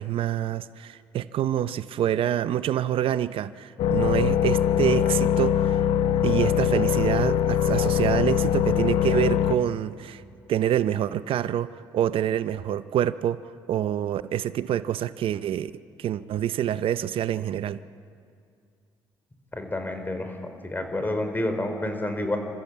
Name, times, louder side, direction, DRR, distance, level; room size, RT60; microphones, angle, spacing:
voice 1, 0.0-5.8 6.2-10.2 10.5-13.4 13.7-15.7 16.0-17.8, right 11 dB, 65° right, 15 dB, 0.5 m, -26 dB
sound 1, 3.8-9.6, left 9 dB, 75° left, 0.8 m, -22 dB
voice 2, 19.5-22.4, left 1 dB, 20° left, 6 dB, 4.0 m, -29 dB
27.5 x 13.5 x 8.4 m, 2.3 s
supercardioid pair, 65°, 10 cm